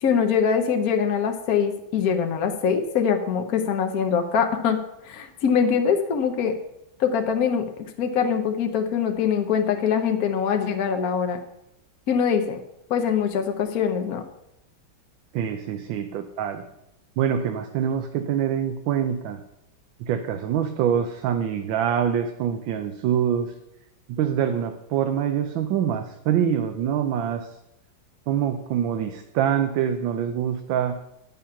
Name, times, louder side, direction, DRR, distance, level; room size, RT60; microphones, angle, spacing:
voice 1, 0.0-4.8 5.0-6.5 7.0-7.7 8.0-11.4 12.1-12.6 12.9-14.2, left 7 dB, 55° left, 5 dB, 1.2 m, -23 dB
voice 2, 15.3-16.6 17.2-19.4 20.0-23.5 24.1-27.5 28.3-30.9, right 9 dB, 80° right, 7 dB, 1.5 m, -25 dB
10.0 x 7.6 x 5.7 m, 0.83 s
omnidirectional pair, 2.1 m